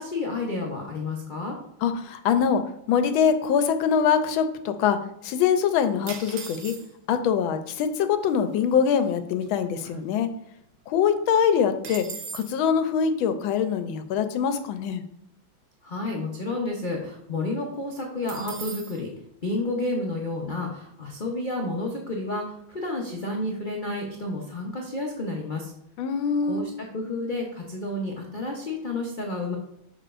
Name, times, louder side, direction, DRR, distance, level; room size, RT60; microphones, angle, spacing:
voice 1, 0.0-1.6 15.8-19.1 19.4-25.7 26.5-29.5, left 2 dB, 60° left, -1 dB, 0.5 m, -30 dB
voice 2, 1.8-2.6 2.9-5.0 5.2-6.7 7.1-10.3 10.9-12.1 12.3-15.0 26.0-26.6, left 7 dB, 85° left, 9 dB, 1.4 m, -23 dB
sound 1, 6.1-7.2 8.0-8.1 8.2-8.6 9.0-10.5 10.8-10.9 11.2-12.6 18.3-19.0, right 5 dB, 60° right, 1.1 m, -39 dB
6.7 x 6.1 x 2.5 m, 0.77 s
omnidirectional pair, 2.2 m